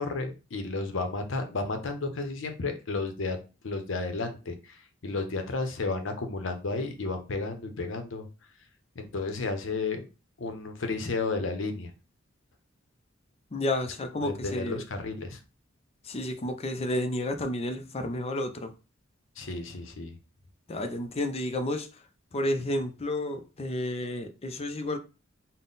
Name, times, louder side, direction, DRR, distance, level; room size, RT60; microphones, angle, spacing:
voice 1, 0.0-3.4 3.6-8.3 8.9-10.1 10.4-11.9 14.2-15.4 19.4-20.1, left 3 dB, 70° left, 0.7 m, -32 dB
voice 2, 13.5-14.8 16.0-18.7 20.7-22.0 22.3-25.0, left 1 dB, 30° left, 0.5 m, -31 dB
3.8 x 2.1 x 3.9 m
head